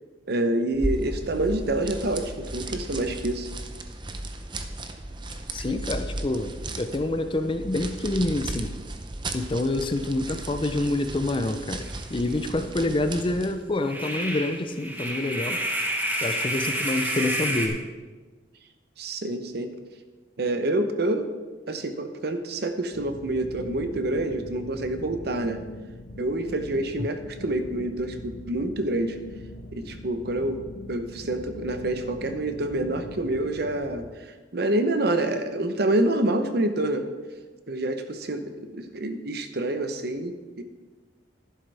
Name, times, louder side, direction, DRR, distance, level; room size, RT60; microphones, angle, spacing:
voice 1, 0.3-3.5 5.6-5.8 19.0-19.7 20.4-21.3 21.7-25.6 26.2-29.2 29.7-30.6 30.9-34.1 34.5-37.1 37.7-40.6, right 1 dB, 60° right, 8 dB, 0.8 m, -27 dB
sound 1, 0.7-13.6, right 2 dB, 25° right, 0.6 m, -35 dB
voice 2, 5.5-8.7 9.3-15.6 16.2-17.8 27.0-27.1, left 2 dB, 30° left, 8 dB, 0.5 m, -27 dB
sound 2, 11.9-12.0 12.3-12.4 13.8-17.7, right 1 dB, 10° right, 1.1 m, -29 dB
sound 3, 22.9-34.1, left 1 dB, 65° left, 0.7 m, -42 dB
11.0 x 11.0 x 3.4 m, 1.3 s
head